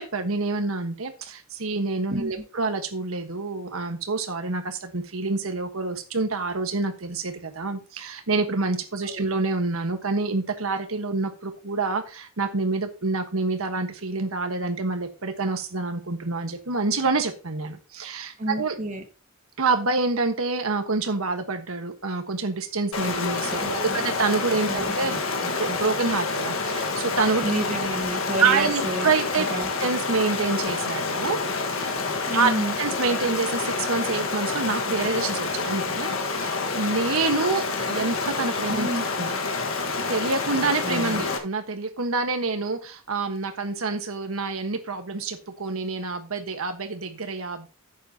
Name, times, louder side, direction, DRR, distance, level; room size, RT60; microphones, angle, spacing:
voice 1, 0.0-18.7 19.6-27.5 28.4-29.5 29.8-31.4 31.8-32.5 32.8-39.3 40.1-47.7, right 3 dB, 90° right, 6 dB, 1.4 m, -27 dB
voice 2, 18.4-19.0 23.6-24.0 24.7-25.2 27.4-29.7 32.3-32.7 38.7-39.0 40.8-41.3, right 1 dB, 35° right, 3 dB, 1.7 m, -30 dB
Stream, 22.9-41.4, left 4 dB, 75° left, 1.6 m, -28 dB
11.5 x 8.4 x 2.8 m, 0.32 s
head